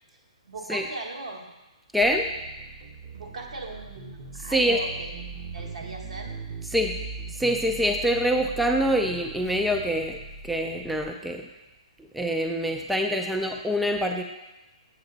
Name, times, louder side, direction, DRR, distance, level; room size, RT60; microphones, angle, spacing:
voice 1, 0.4-1.4 3.1-5.2 5.5-6.3, right 2 dB, 75° right, 1 dB, 1.4 m, -38 dB
voice 2, 1.9-2.3 4.5-4.8 6.7-7.0 7.3-10.2 10.4-11.5 12.1-14.2, equal, ahead, 2 dB, 0.4 m, -25 dB
sound 1, 2.0-11.1, right 5 dB, 35° right, 0.7 m, -40 dB
7.2 x 5.7 x 3.9 m, 1.0 s
hypercardioid pair, 145°, 4 cm